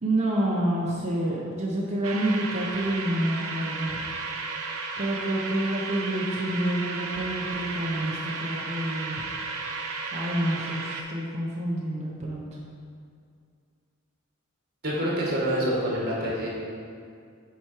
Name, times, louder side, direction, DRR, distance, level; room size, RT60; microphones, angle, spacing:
voice 1, 0.0-4.0 5.0-9.2 9.8-12.4, right 1 dB, 30° right, -4 dB, 0.8 m, -28 dB
sound 1, 2.0-11.0, right 4 dB, 80° right, 0.8 m, -34 dB
voice 2, 14.8-16.5, equal, 50° right, -5 dB, 1.8 m, -26 dB
8.0 x 4.7 x 4.5 m, 2.3 s
head